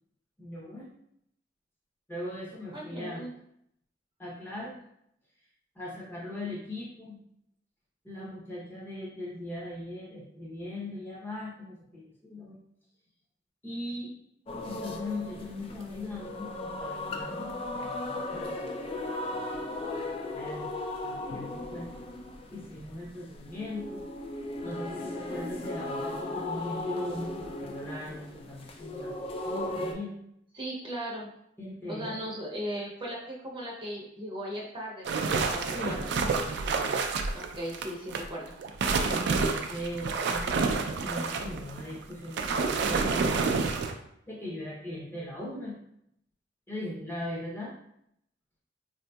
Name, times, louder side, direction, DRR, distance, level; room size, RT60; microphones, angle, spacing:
voice 1, 0.4-0.9 2.1-3.2 4.2-4.8 5.7-7.2 8.0-12.6 13.6-14.1 14.7-18.9 20.0-21.9 22.5-24.0 24.6-30.2 31.6-32.3 35.7-36.0 36.6-37.1 39.0-42.6 42.9-43.5 44.2-45.8 46.7-47.8, left 1 dB, 10° left, -4 dB, 0.7 m, -39 dB
voice 2, 2.7-3.3 30.5-31.3 31.9-36.0 37.3-38.5, equal, 25° right, -4 dB, 0.6 m, -37 dB
sound 1, 14.5-29.9, left 2 dB, 30° left, 0.3 m, -37 dB
sound 2, 35.0-38.2 38.6-43.9, right 4 dB, 65° right, 0.3 m, -29 dB
3.7 x 2.6 x 2.2 m, 0.75 s
head